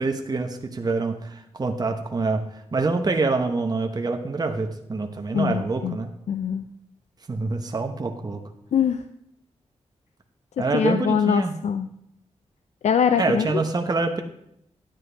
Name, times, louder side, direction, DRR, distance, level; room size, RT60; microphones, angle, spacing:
voice 1, 0.0-2.4 2.7-6.1 7.3-8.4 10.6-11.5 13.2-14.2, right 3 dB, 35° right, 4 dB, 0.9 m, -25 dB
voice 2, 5.3-6.0 6.3-6.7 8.7-9.0 10.7-11.9 12.8-13.6, left 7 dB, 70° left, 10 dB, 0.4 m, -23 dB
10.5 x 9.4 x 3.4 m, 0.76 s
cardioid pair, 70°, 12 cm